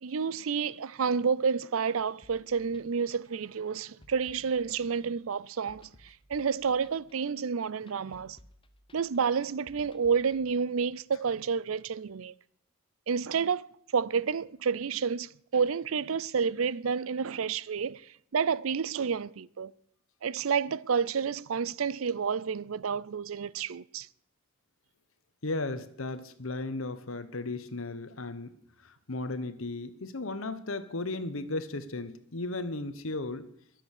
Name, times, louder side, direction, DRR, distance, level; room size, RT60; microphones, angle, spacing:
voice 1, 0.0-8.4 8.9-12.3 13.1-18.0 18.3-19.7 20.2-24.1, right 6 dB, 75° right, 0.5 m, -30 dB
sound 1, 2.2-10.4, left 1 dB, 25° left, 1.1 m, -59 dB
voice 2, 25.4-28.5 28.8-33.5, left 2 dB, 75° left, 1.2 m, -35 dB
22.0 x 7.7 x 6.6 m
head